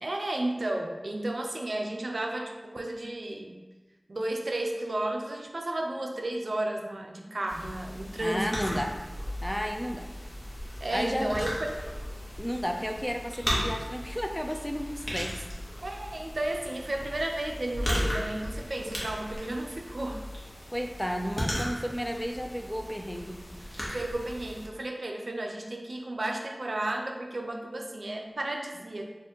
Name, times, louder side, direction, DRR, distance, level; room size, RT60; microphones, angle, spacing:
voice 1, 0.0-3.6 4.1-8.5 10.8-11.8 15.8-20.3 23.9-29.0, right 1 dB, 70° right, 2 dB, 0.4 m, -33 dB
sound 1, 7.5-24.7, equal, 35° left, 1.1 m, -36 dB
voice 2, 8.2-9.0 9.4-10.1 10.9-11.3 12.4-15.4 20.7-23.4, equal, 10° left, 3 dB, 0.3 m, -32 dB
4.1 x 2.4 x 2.9 m, 1.2 s
wide cardioid pair, 40°, 0 cm